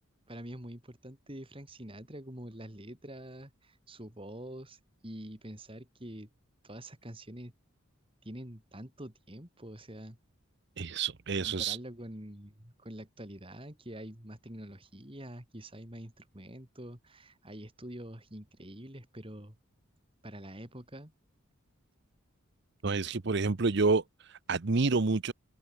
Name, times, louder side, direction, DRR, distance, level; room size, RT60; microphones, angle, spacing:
voice 1, 0.3-6.3 6.6-7.5 8.2-10.2 11.4-19.6 20.2-21.1, right 1 dB, 25° right, 3.3 m, -46 dB
voice 2, 10.8-11.8 22.8-25.3, right 4 dB, 55° right, 0.7 m, -28 dB
head